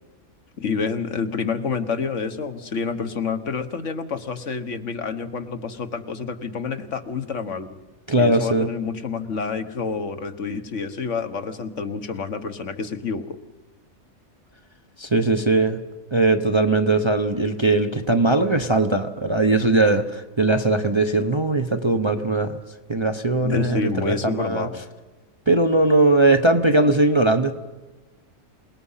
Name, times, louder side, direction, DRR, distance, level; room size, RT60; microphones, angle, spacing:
voice 1, 0.6-7.7 8.2-13.3 23.4-24.8, left 5 dB, 60° left, 9 dB, 1.5 m, -28 dB
voice 2, 8.1-8.7 15.0-15.8 16.1-22.6 22.9-24.7 25.5-27.5, right 2 dB, 25° right, 6 dB, 0.8 m, -20 dB
27.5 x 19.0 x 5.7 m, 1.2 s
omnidirectional pair, 1.4 m